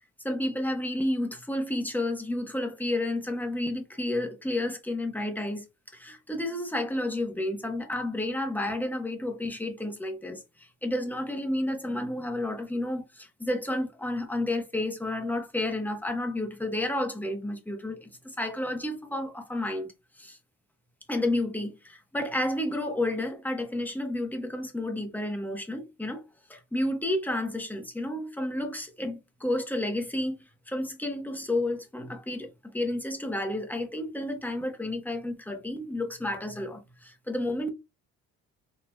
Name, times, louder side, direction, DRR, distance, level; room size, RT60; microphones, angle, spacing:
voice 1, 0.2-5.6 5.9-19.9 20.2-20.4 21.1-26.2 26.5-30.4 30.7-37.7, left 1 dB, 5° left, 1.0 m, -31 dB
4.4 x 2.9 x 2.3 m
cardioid pair, 90°, 30 cm